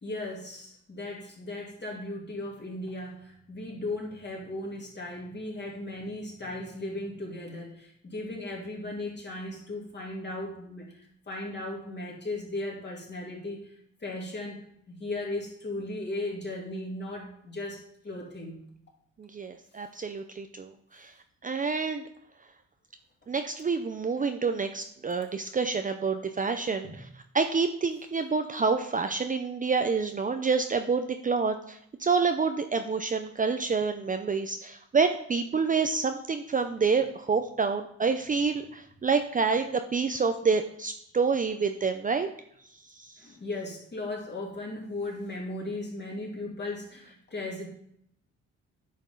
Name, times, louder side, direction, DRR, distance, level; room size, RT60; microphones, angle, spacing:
voice 1, 0.0-18.6 26.8-27.0 36.7-36.9 43.2-47.7, left 2 dB, 35° left, -2 dB, 3.1 m, -37 dB
voice 2, 19.2-20.7 21.4-22.0 23.3-26.9 27.3-42.3, right 5 dB, 25° right, 7 dB, 0.6 m, -28 dB
9.9 x 5.2 x 3.8 m, 0.70 s
cardioid pair, 90°, 30 cm